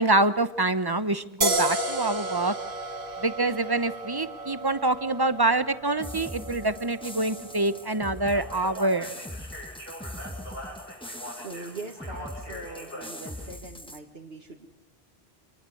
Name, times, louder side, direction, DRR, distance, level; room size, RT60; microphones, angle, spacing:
voice 1, 0.0-2.5 3.2-9.1, right 2 dB, 25° right, 12 dB, 1.0 m, -26 dB
sound 1, 1.4-8.7, right 1 dB, 55° right, 2.0 m, -33 dB
sound 2, 6.0-14.0, left 1 dB, 5° left, 1.5 m, -41 dB
Speech, 8.1-13.5, equal, 65° left, 7.5 m, -41 dB
voice 2, 11.3-14.7, right 3 dB, 70° right, 1 dB, 2.1 m, -41 dB
27.0 x 20.0 x 7.9 m, 0.81 s
omnidirectional pair, 1.1 m